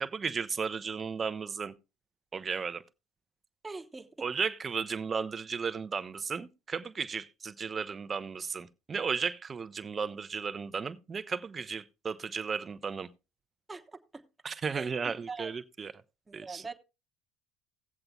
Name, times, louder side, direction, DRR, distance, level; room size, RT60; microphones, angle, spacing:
voice 1, 0.0-1.7 2.3-2.8 4.2-13.1 14.4-15.9 16.3-16.6, right 5 dB, 35° right, 0.6 m, -34 dB
voice 2, 3.6-4.3 13.7-14.2 14.7-15.5 16.3-16.7, right 3 dB, 20° right, 1.0 m, -43 dB
18.0 x 7.8 x 2.3 m
hypercardioid pair, 65°, 0 cm